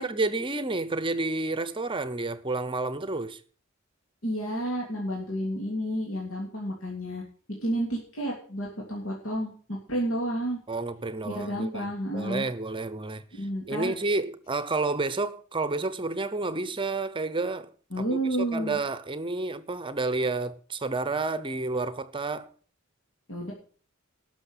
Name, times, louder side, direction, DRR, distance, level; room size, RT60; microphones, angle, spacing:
voice 1, 0.0-3.4 10.7-13.2 13.7-17.7 18.0-18.2 18.5-22.5, right 3 dB, 25° right, 0.8 m, -30 dB
voice 2, 4.2-7.2 7.6-10.6 11.2-12.5 13.3-13.9 17.9-18.8 23.3-23.5, right 1 dB, 70° left, 3.0 m, -31 dB
12.0 x 6.4 x 8.0 m
head